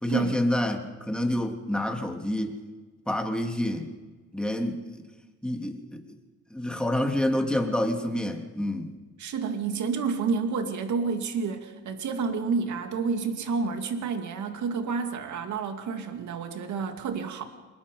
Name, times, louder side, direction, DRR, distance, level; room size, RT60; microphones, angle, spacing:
voice 1, 0.0-2.6 3.1-3.9 4.3-5.0 5.4-6.0 6.5-9.0, left 1 dB, 5° left, 3 dB, 3.2 m, -28 dB
voice 2, 9.2-17.4, right 5 dB, 70° right, 6 dB, 2.4 m, -29 dB
26.5 x 21.5 x 5.5 m, 1.3 s
cardioid pair, 90°, 30 cm